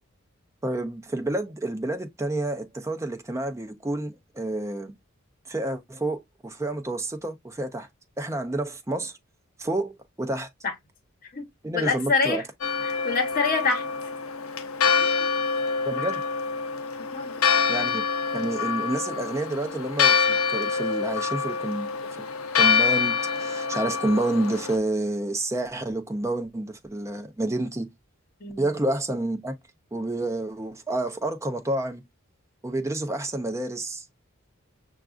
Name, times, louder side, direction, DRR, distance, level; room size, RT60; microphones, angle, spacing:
voice 1, 0.6-4.9 5.5-7.9 8.2-9.1 9.6-10.5 11.6-12.4 15.9-16.2 17.7-18.0 18.3-21.9 22.2-22.3 22.6-27.9 28.6-29.6 29.9-32.0 32.6-34.1, right 1 dB, 15° right, 0.5 m, -29 dB
voice 2, 11.7-12.4 12.8-13.8 15.0-15.1 17.1-17.6 28.4-28.7, left 4 dB, 40° left, 1.0 m, -26 dB
Church bell, 12.6-24.8, left 5 dB, 75° left, 0.6 m, -26 dB
6.0 x 2.4 x 2.4 m
head